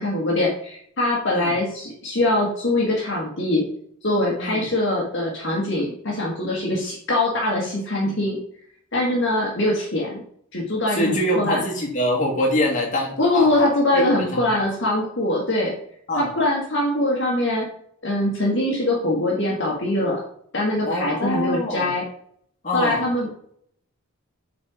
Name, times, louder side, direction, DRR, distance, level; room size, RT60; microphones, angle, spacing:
voice 1, 0.0-3.6 4.0-8.4 8.9-10.2 10.5-11.6 13.2-15.7 16.2-17.7 18.0-20.2 20.5-22.0 22.7-23.3, left 1 dB, 55° left, -3 dB, 1.7 m, -22 dB
voice 2, 10.9-13.7 13.9-14.5 16.1-16.3 20.9-21.9 22.6-23.0, equal, 35° left, -3 dB, 2.3 m, -24 dB
7.9 x 4.2 x 4.9 m, 0.65 s
head